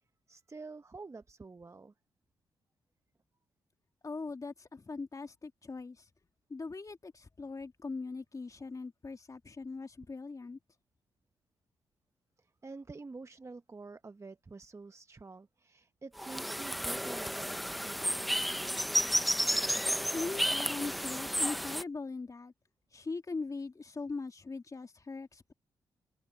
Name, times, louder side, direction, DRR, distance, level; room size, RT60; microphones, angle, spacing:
voice 1, 0.3-1.9 12.4-18.6, right 3 dB, 30° right, 1.0 m, -48 dB
voice 2, 4.0-6.1 6.5-10.6 20.1-22.5 22.9-25.5, left 3 dB, 35° left, 2.5 m, -40 dB
sound 1, 16.2-21.8, equal, ahead, 1.0 m, -32 dB
hypercardioid pair, 40°, 9 cm